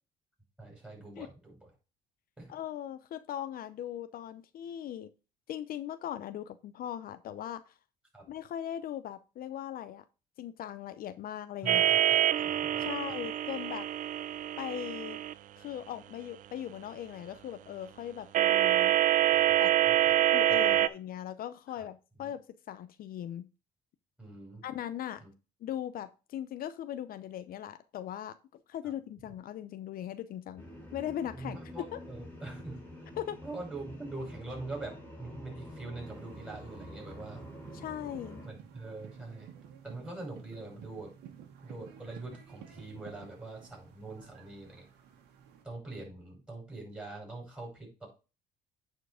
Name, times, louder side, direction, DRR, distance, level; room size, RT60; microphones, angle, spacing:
voice 1, 0.6-1.7 2.4-2.5 8.1-8.2 11.6-13.2 19.3-19.9 20.5-20.9 22.2-22.3 24.2-24.6 25.2-25.3 31.3-32.8 33.4-37.5 38.4-39.5 39.8-41.1 41.6-44.9 45.6-48.1, right 2 dB, 5° right, -2 dB, 5.8 m, -44 dB
voice 2, 2.5-5.1 5.5-7.7 8.3-10.0 10.4-11.8 12.8-13.9 14.6-15.2 15.6-18.9 19.6-19.7 20.3-22.4 22.7-23.5 24.6-25.2 25.6-28.3 28.7-30.6 30.9-32.0 33.2-33.4 37.7-38.4, left 11 dB, 60° left, 11 dB, 0.7 m, -39 dB
sound 1, 11.7-15.3 18.3-20.9, right 12 dB, 50° right, 0.5 m, -26 dB
sound 2, 30.6-38.5, left 1 dB, 10° left, 3.4 m, -48 dB
sound 3, 36.0-45.6, right 8 dB, 80° right, 1.8 m, -53 dB
9.1 x 4.6 x 4.9 m, 0.31 s
cardioid pair, 110°, 17 cm